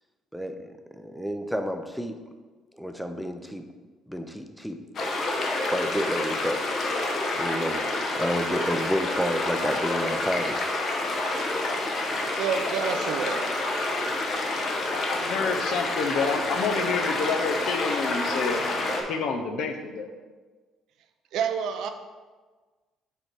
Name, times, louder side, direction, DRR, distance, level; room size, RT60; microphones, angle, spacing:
voice 1, 0.3-2.1 2.7-3.6 4.1-4.8 5.6-6.6 7.0-7.1 7.4-7.9 8.2-10.6, equal, ahead, 6 dB, 0.5 m, -30 dB
sound 1, 4.9-19.0, left 2 dB, 50° left, 0.9 m, -28 dB
voice 2, 12.1-13.5 21.3-21.9, right 7 dB, 75° right, 7 dB, 0.5 m, -29 dB
voice 3, 14.9-18.6 19.1-20.1, left 4 dB, 70° left, 6 dB, 0.7 m, -28 dB
5.4 x 4.3 x 4.6 m, 1.4 s
cardioid pair, 115°, 0 cm